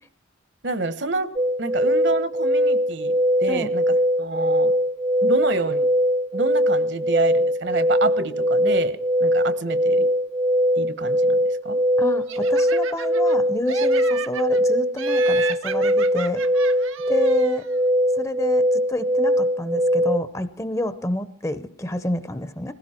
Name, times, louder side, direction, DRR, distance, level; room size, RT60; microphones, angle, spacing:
voice 1, 0.6-1.3 1.6-3.1 3.4-4.7 5.2-5.9 6.3-10.1 10.8-11.8, right 3 dB, 60° right, 14 dB, 1.1 m, -28 dB
sound 1, 1.4-20.2, equal, 25° right, 0.7 m, -21 dB
voice 2, 12.0-16.4 17.1-17.6 18.2-22.7, left 1 dB, 15° left, 13 dB, 0.7 m, -29 dB
Laughter, 12.3-13.4 13.7-14.6 15.0-17.7, right 8 dB, 85° right, 0.8 m, -34 dB
20.0 x 16.0 x 4.4 m, 0.64 s
head